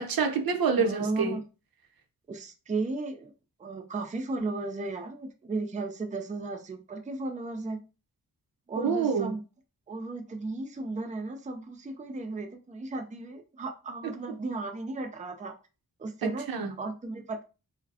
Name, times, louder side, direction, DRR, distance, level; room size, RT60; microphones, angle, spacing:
voice 1, 0.0-1.4 8.8-9.4 14.0-14.1 16.2-16.8, right 5 dB, 80° right, 0.7 m, -27 dB
voice 2, 0.8-1.4 2.3-3.3 3.6-7.8 8.7-9.4 9.9-15.6 16.0-16.5 16.8-17.4, right 3 dB, 20° right, 0.5 m, -35 dB
4.9 x 2.2 x 2.7 m
wide cardioid pair, 120°, 35 cm